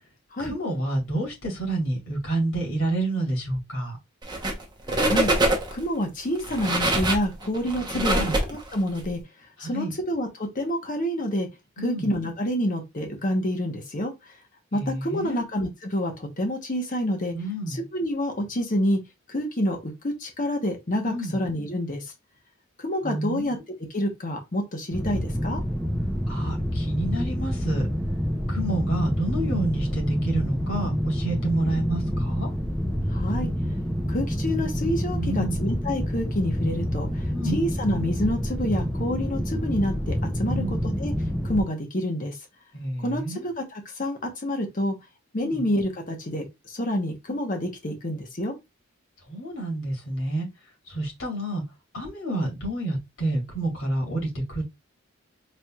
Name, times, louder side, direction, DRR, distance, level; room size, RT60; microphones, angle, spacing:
voice 1, 0.4-4.0 7.9-8.4 9.6-9.9 11.8-12.2 14.7-15.4 17.3-17.9 21.0-21.4 23.0-23.6 26.3-27.9 28.5-32.5 35.2-35.7 37.3-37.7 40.4-40.9 42.7-43.5 45.4-45.7 49.3-50.5 50.9-51.6 51.9-54.6, right 1 dB, 70° left, 2.4 m, -29 dB
sound 1, 4.2-4.6 4.9-5.8 6.4-9.0, right 1 dB, 20° right, 0.9 m, -24 dB
voice 2, 4.9-5.3 5.7-8.2 8.5-9.2 9.6-11.5 11.8-14.1 14.7-17.3 17.7-19.0 19.3-22.0 22.8-23.6 23.9-25.6 33.1-33.5 34.1-37.1 37.5-40.6 41.0-41.1 41.4-42.4 43.0-44.9 45.3-48.5, equal, 40° left, 1.0 m, -28 dB
sound 2, 24.9-41.6, equal, 5° left, 0.7 m, -27 dB
4.2 x 3.4 x 2.3 m
head